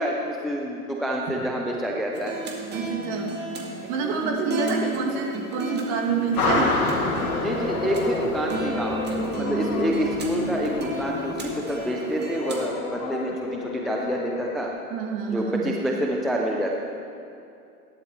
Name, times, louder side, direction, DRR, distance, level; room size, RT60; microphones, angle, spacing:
voice 1, 0.0-2.4 7.4-14.7 15.3-16.7, equal, ahead, -1 dB, 0.3 m, -27 dB
sound 1, 2.1-12.7, right 2 dB, 25° right, 1.9 m, -33 dB
voice 2, 2.7-3.4 3.9-6.7 9.7-9.8 14.9-15.7, right 4 dB, 50° right, -1 dB, 2.5 m, -27 dB
sound 2, 6.4-11.7, left 2 dB, 80° left, 2.3 m, -28 dB
sound 3, 7.3-14.7, left 7 dB, 50° left, 1.0 m, -35 dB
17.0 x 11.0 x 3.1 m, 2.6 s
hypercardioid pair, 110°, 44 cm